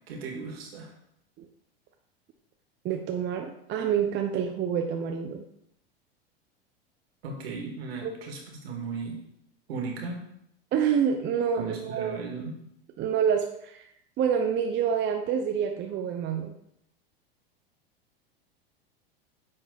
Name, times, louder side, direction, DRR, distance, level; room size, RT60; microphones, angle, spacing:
voice 1, 0.1-0.9 7.2-9.2 9.7-10.2 11.6-12.5, right 4 dB, 75° right, 0 dB, 2.3 m, -36 dB
voice 2, 2.8-5.5 8.0-8.1 10.7-12.2 13.0-13.8 14.2-16.5, right 7 dB, 35° right, 3 dB, 0.9 m, -27 dB
9.2 x 3.9 x 4.0 m, 0.76 s
hypercardioid pair, 90°, 31 cm